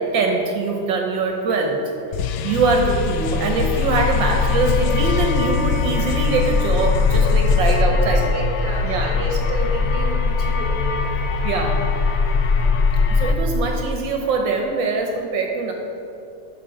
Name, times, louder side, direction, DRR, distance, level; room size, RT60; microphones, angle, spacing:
voice 1, 0.0-1.8 2.1-8.2 8.8-9.1 11.4-12.1 13.1-15.7, right 3 dB, 70° right, 2 dB, 1.5 m, -23 dB
sound 1, 2.1-7.8, left 7 dB, 85° left, 1.4 m, -26 dB
sound 2, 2.8-13.3, left 4 dB, 65° left, 1.1 m, -21 dB
Chink clink, 4.8-9.1, left 3 dB, 40° right, 1.7 m, -38 dB
voice 2, 7.6-11.4, right 2 dB, 20° right, -1 dB, 1.2 m, -30 dB
11.0 x 5.7 x 4.9 m, 2.8 s
omnidirectional pair, 2.2 m